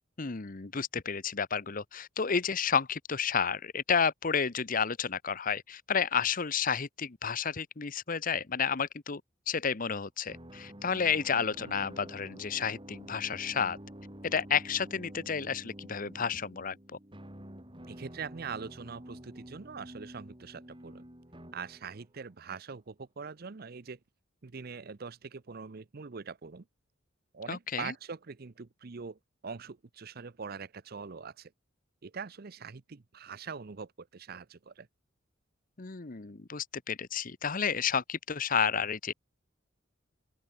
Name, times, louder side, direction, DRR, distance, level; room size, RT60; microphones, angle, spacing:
voice 1, 0.2-9.2 9.5-13.8 14.2-16.8 27.5-27.9 35.8-39.1, left 6 dB, 45° left, 0.9 m, -31 dB
sound 1, 10.2-22.3, equal, 25° right, 4.4 m, -49 dB
voice 2, 17.9-21.1 21.5-24.0 24.4-26.6 27.3-31.5 32.0-34.9, right 5 dB, 50° right, 0.6 m, -43 dB
open air
head